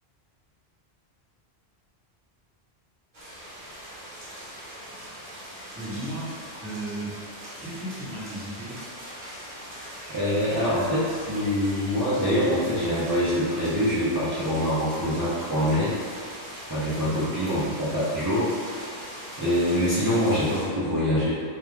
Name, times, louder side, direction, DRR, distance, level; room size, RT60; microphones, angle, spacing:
sound 1, 3.1-20.6, equal, 50° right, 1.0 m, -40 dB
voice 1, 5.8-7.1 7.6-8.7 17.0-17.2, right 1 dB, 15° right, -11 dB, 0.8 m, -35 dB
voice 2, 10.1-15.9 16.7-18.5 19.4-21.3, equal, 30° right, -12 dB, 0.4 m, -24 dB
2.3 x 2.3 x 3.1 m, 2.1 s
omnidirectional pair, 1.1 m